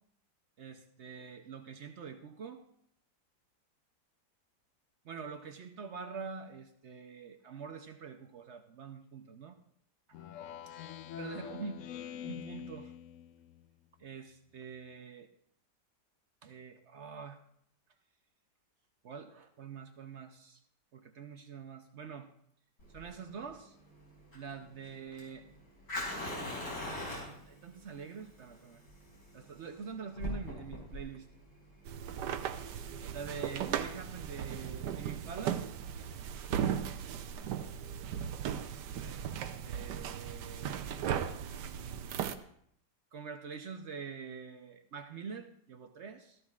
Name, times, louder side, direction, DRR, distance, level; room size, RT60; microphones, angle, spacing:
voice 1, 0.6-2.6 5.0-9.6 10.1-10.2 11.2-11.8 12.2-12.9 14.0-15.3 16.4-17.4 19.0-20.6 20.9-22.3 22.9-23.7 24.3-25.5 26.6-28.8 29.3-31.3 33.1-35.6 39.0-39.3 39.6-40.8 43.1-46.4, right 6 dB, 55° right, 6 dB, 0.8 m, -45 dB
Speech synthesizer, 10.1-13.7, left 10 dB, 70° left, 0.7 m, -45 dB
Fire, 22.8-33.9, left 1 dB, 90° left, 5.2 m, -43 dB
sound 1, 31.9-42.3, right 9 dB, 75° right, 1.3 m, -37 dB
17.0 x 13.5 x 2.4 m, 0.69 s
omnidirectional pair, 1.9 m